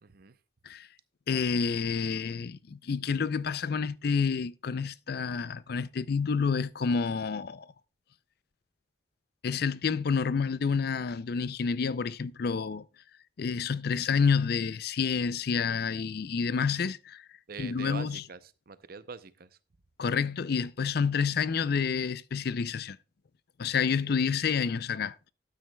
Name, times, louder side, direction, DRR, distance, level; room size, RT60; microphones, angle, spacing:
voice 1, 0.0-0.4 17.5-19.6 24.0-24.3, right 5 dB, 55° right, 0.6 m, -44 dB
voice 2, 1.3-7.7 9.4-12.8 13.4-17.3 17.6-18.2 20.0-23.0 23.6-25.1, left 5 dB, 55° left, 0.4 m, -29 dB
12.5 x 9.2 x 2.2 m
head